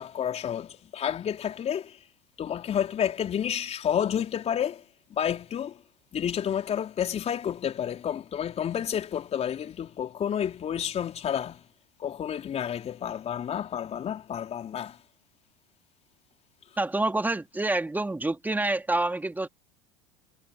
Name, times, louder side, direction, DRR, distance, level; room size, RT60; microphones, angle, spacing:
voice 1, 0.0-2.0 2.4-4.8 5.1-5.8 6.1-11.6 12.0-15.0, left 9 dB, 35° left, 4.1 m, -30 dB
voice 2, 16.8-19.5, right 2 dB, 10° right, 2.5 m, -27 dB
hypercardioid pair, 75°, 18 cm